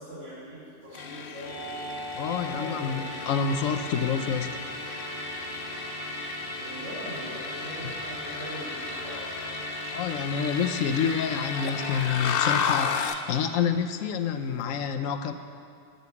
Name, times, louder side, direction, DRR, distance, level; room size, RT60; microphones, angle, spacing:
voice 1, 0.0-1.5 2.4-3.1 6.6-9.5, equal, 65° right, -12 dB, 3.5 m, -41 dB
sound 1, 0.9-13.3, left 7 dB, 60° left, 0.6 m, -35 dB
Musical instrument, 1.4-13.1, equal, 40° right, 3.6 m, -37 dB
voice 2, 2.1-4.6 9.9-15.3, left 7 dB, 85° left, 8 dB, 1.0 m, -28 dB
9.6 x 7.9 x 6.9 m, 2.3 s
omnidirectional pair, 1.3 m